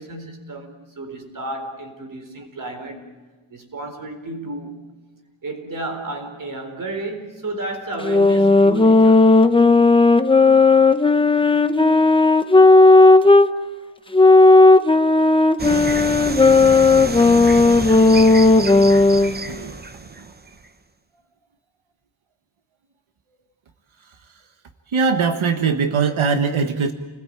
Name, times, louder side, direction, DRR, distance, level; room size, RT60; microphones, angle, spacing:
voice 1, 0.0-3.0 3.5-4.8 5.4-9.5, right 2 dB, 40° right, 4.2 m, -32 dB
sound 1, 8.0-13.5 14.1-19.3, left 3 dB, 10° left, 0.8 m, -13 dB
sound 2, 15.6-20.7, right 3 dB, 20° right, 0.9 m, -29 dB
voice 2, 18.0-18.5 19.5-19.7 24.9-26.9, right 5 dB, 85° right, 1.6 m, -21 dB
29.5 x 20.5 x 8.8 m
wide cardioid pair, 180°, 47 cm